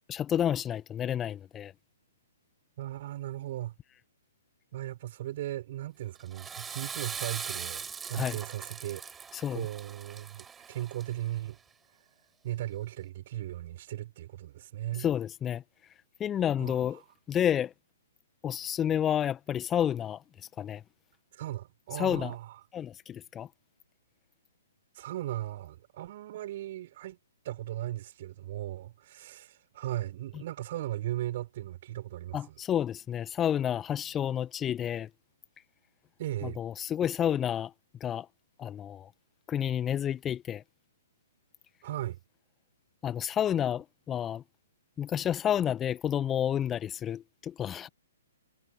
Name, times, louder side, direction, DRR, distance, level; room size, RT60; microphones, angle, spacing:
voice 1, 0.1-1.7 8.1-8.4 9.3-9.7 15.0-15.6 16.2-17.0 17.3-17.7 18.4-20.2 20.6-20.8 21.9-22.3 22.7-23.5 32.3-35.1 36.4-37.7 38.0-38.3 38.6-39.1 39.5-40.6 43.0-44.4 45.0-47.9, left 9 dB, 15° left, 1.5 m, -30 dB
voice 2, 2.8-3.7 4.7-9.0 9.5-11.6 12.4-15.1 16.6-16.8 21.3-22.6 24.9-27.2 27.4-32.6 36.2-36.6 41.8-42.2, right 14 dB, 40° right, 6.6 m, -37 dB
Water / Toilet flush, 6.2-11.4, right 6 dB, 10° right, 6.6 m, -41 dB
figure-of-eight pair, 125°, 0 cm